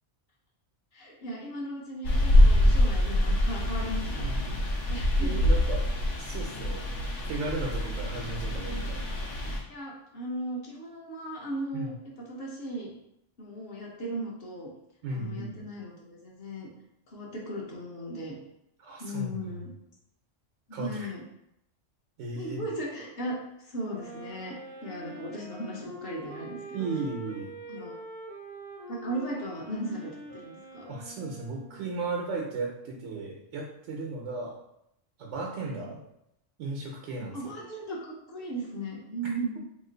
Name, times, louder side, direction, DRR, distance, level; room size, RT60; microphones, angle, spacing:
voice 1, 0.9-4.3 4.9-5.5 8.6-8.9 9.7-11.9 12.3-12.9 13.4-14.7 15.1-16.7 17.1-18.4 19.0-19.7 20.7-21.2 22.3-23.3 23.7-24.5 24.8-26.8 27.7-27.9 28.9-30.9 35.8-35.9 37.3-39.6, right 1 dB, 55° left, -3 dB, 1.0 m, -37 dB
sound 1, 2.0-9.6, left 1 dB, 85° left, 1.1 m, -25 dB
voice 2, 3.8-4.6 5.2-5.8 6.2-6.8 7.2-9.0 11.7-12.0 15.0-15.6 18.8-19.7 20.7-21.1 22.2-22.6 26.7-27.5 30.9-34.5 35.2-36.0 36.6-37.6 39.2-39.3, right 3 dB, 85° right, -1 dB, 1.0 m, -35 dB
Wind instrument woodwind instrument, 23.7-32.1, right 1 dB, 30° right, 0.5 m, -45 dB
3.0 x 2.4 x 3.8 m, 0.79 s
omnidirectional pair, 1.2 m